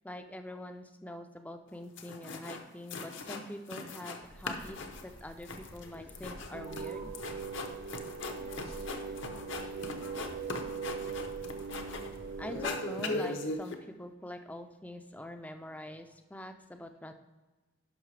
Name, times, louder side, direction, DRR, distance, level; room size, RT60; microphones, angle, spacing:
voice 1, 0.0-7.1 12.4-17.1, left 1 dB, 5° left, 7 dB, 0.4 m, -44 dB
sound 1, 1.7-1.8 2.0-2.6 2.9-4.2 4.4-12.2 12.5-13.7, left 3 dB, 60° left, 0.8 m, -39 dB
sound 2, 4.2-12.7, right 1 dB, 75° right, 1.9 m, -51 dB
sound 3, 6.5-13.5, right 6 dB, 50° right, 0.5 m, -41 dB
voice 2, 8.3-10.7, left 1 dB, 80° left, 2 dB, 1.7 m, -54 dB
11.5 x 5.6 x 3.2 m, 1.2 s
head